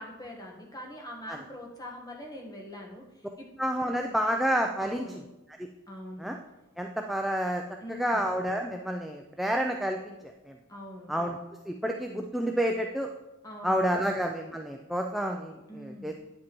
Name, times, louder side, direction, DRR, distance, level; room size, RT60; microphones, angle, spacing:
voice 1, 0.0-3.0 3.4-3.5 4.8-5.2 5.9-6.3 7.8-8.3 10.7-11.1 13.4-14.2 15.7-16.1, left 1 dB, 20° left, -1 dB, 1.2 m, -43 dB
voice 2, 3.6-5.2 6.2-6.4 6.8-7.6 8.0-10.0 11.1-11.4 11.7-13.1 13.6-16.1, equal, ahead, 2 dB, 0.3 m, -29 dB
9.6 x 7.5 x 3.0 m, 1.0 s
head